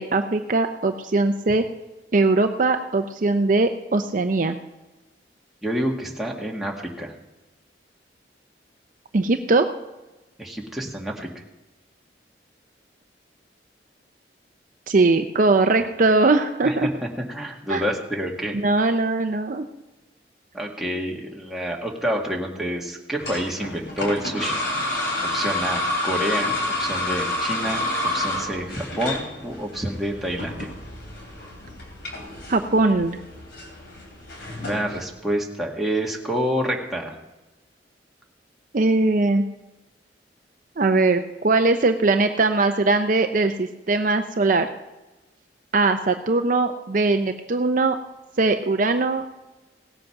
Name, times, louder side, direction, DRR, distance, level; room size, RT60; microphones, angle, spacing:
voice 1, 0.0-1.6 2.1-4.6 9.1-9.7 14.9-16.9 17.7-17.8 18.5-19.6 32.5-33.2 38.7-39.4 40.8-44.7 45.7-48.0 48.4-49.3, right 3 dB, 50° right, 7 dB, 0.6 m, -20 dB
voice 2, 5.6-7.1 10.4-11.3 16.6-18.6 18.8-18.9 20.5-24.6 25.2-27.8 28.1-30.7 34.6-37.1, equal, ahead, -1 dB, 1.7 m, -28 dB
sound 1, 23.2-35.1, left 1 dB, 70° left, 2.9 m, -29 dB
17.0 x 7.8 x 5.8 m, 1.1 s
head